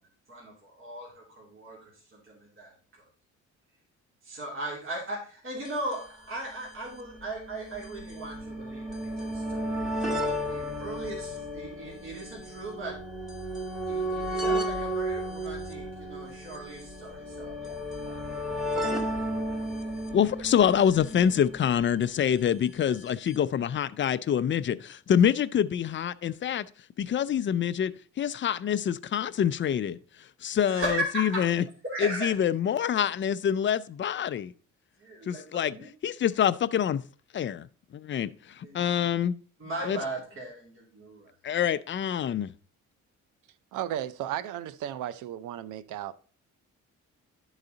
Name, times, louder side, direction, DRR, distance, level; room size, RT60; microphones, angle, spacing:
voice 1, 0.3-1.8 2.1-2.7 4.2-8.9 9.3-13.0 13.9-17.8 18.1-18.7 19.2-19.4 30.7-31.4 31.8-32.3 35.0-35.9 38.6-38.8 39.6-41.3, right 1 dB, 45° right, 2.8 m, -37 dB
sound 1, 5.6-5.7 5.9-6.0 6.9-22.1 23.1-23.2 23.3-23.4, right 1 dB, ahead, 1.7 m, -33 dB
voice 2, 20.1-26.7 27.0-30.0 30.4-31.6 32.0-34.5 35.3-35.8 36.0-37.0 37.3-37.7 37.9-39.3 39.8-40.0 41.4-42.5, left 9 dB, 40° left, 0.5 m, -26 dB
voice 3, 43.7-46.1, right 11 dB, 85° right, 0.6 m, -34 dB
11.5 x 4.1 x 3.9 m
cardioid pair, 90°, 30 cm